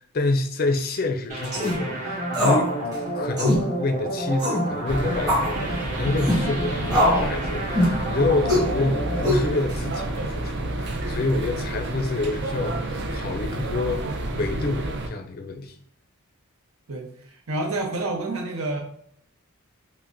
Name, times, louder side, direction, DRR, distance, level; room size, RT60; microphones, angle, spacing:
voice 1, 0.0-14.0 14.3-15.8, left 2 dB, 45° left, 5 dB, 0.4 m, -27 dB
sound 1, 1.3-10.6, right 1 dB, 35° right, 1.1 m, -31 dB
sound 2, 1.4-1.8 2.3-2.7 2.9-3.0 3.4-3.6 4.4-4.7 5.3-5.5 6.2-6.4 6.9-7.3 7.8-8.0 8.5-8.7 9.2-9.7, left 1 dB, 15° right, 1.1 m, -21 dB
sound 3, 4.9-15.1, right 1 dB, 50° right, 0.5 m, -30 dB
voice 2, 16.9-18.8, right 2 dB, 75° right, 3 dB, 0.8 m, -29 dB
5.7 x 2.1 x 2.6 m, 0.65 s
head